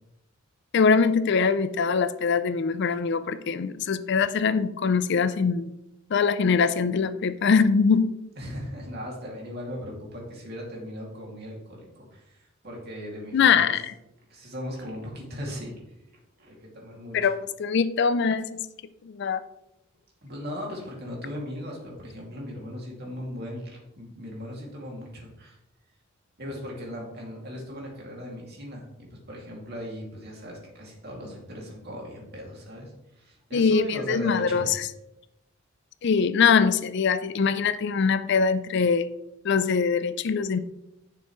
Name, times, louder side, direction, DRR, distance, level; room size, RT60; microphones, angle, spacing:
voice 1, 0.7-5.7 6.1-8.1 13.3-13.9 17.1-18.7 19.0-19.4 33.5-34.9 36.0-39.1 39.4-40.6, left 5 dB, 55° left, 13 dB, 0.4 m, -23 dB
voice 2, 8.4-13.7 14.3-15.7 16.4-17.2 20.2-25.6 26.4-34.7, equal, 50° right, -2 dB, 2.5 m, -38 dB
10.5 x 6.7 x 3.1 m, 0.88 s
head